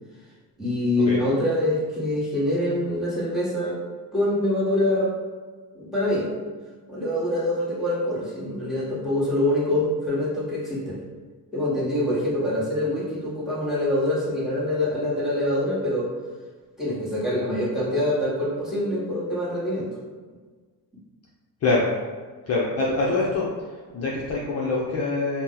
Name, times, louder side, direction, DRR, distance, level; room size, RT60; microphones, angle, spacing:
voice 1, 0.6-3.8 4.1-5.1 5.7-6.3 6.9-11.0 11.5-16.1 16.8-19.9, left 1 dB, ahead, -7 dB, 1.0 m, -25 dB
voice 2, 22.5-23.5 23.9-25.4, left 3 dB, 40° left, -4 dB, 0.5 m, -24 dB
2.7 x 2.0 x 3.7 m, 1.4 s
cardioid pair, 115°, 39 cm